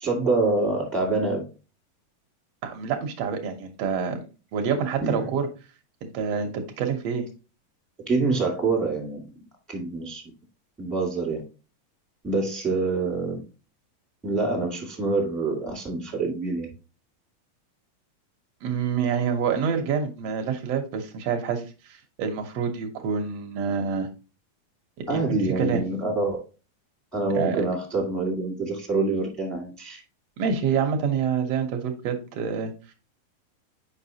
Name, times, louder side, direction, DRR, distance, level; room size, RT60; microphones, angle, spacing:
voice 1, 0.0-1.4 5.0-5.3 8.0-9.2 9.7-10.2 10.8-11.4 12.2-13.4 14.2-16.7 25.1-26.4 27.1-30.0, right 3 dB, ahead, -1 dB, 0.7 m, -26 dB
voice 2, 2.6-4.2 4.5-5.5 6.0-7.3 18.6-24.1 25.1-25.8 27.3-27.7 30.4-32.7, right 6 dB, 75° right, 5 dB, 1.5 m, -27 dB
8.0 x 5.5 x 2.8 m, 0.32 s
omnidirectional pair, 4.2 m